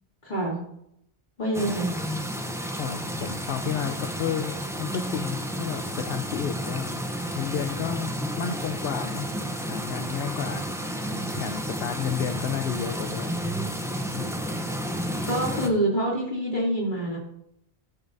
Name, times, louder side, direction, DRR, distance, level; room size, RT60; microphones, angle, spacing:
voice 1, 0.2-0.6 1.4-1.9 15.2-17.2, right 1 dB, 50° left, -4 dB, 3.0 m, -26 dB
sound 1, 1.5-15.7, equal, 5° right, 0.6 m, -31 dB
voice 2, 2.8-6.9 7.3-9.3 9.6-10.7 11.0-13.3 14.1-14.5, left 8 dB, 65° left, 6 dB, 0.9 m, -32 dB
15.5 x 6.3 x 2.6 m, 0.76 s
omnidirectional pair, 1.1 m